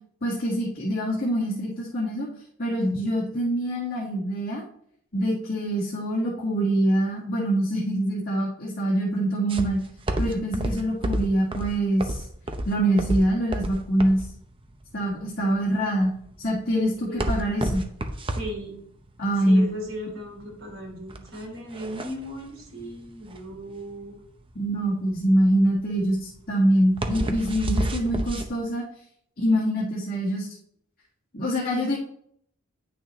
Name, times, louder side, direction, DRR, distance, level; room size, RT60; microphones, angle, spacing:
voice 1, 0.2-2.3 2.6-4.6 5.1-9.8 10.2-12.3 12.6-14.2 14.9-16.1 16.4-17.9 19.2-19.7 24.5-28.8 29.4-30.5 31.3-32.0, right 1 dB, 50° left, -6 dB, 1.8 m, -24 dB
sound 1, 9.5-28.5, right 1 dB, 25° right, 0.7 m, -31 dB
voice 2, 16.7-17.7 18.3-18.8 19.4-24.2, equal, 85° right, -1 dB, 3.0 m, -37 dB
9.2 x 6.1 x 3.1 m, 0.67 s
head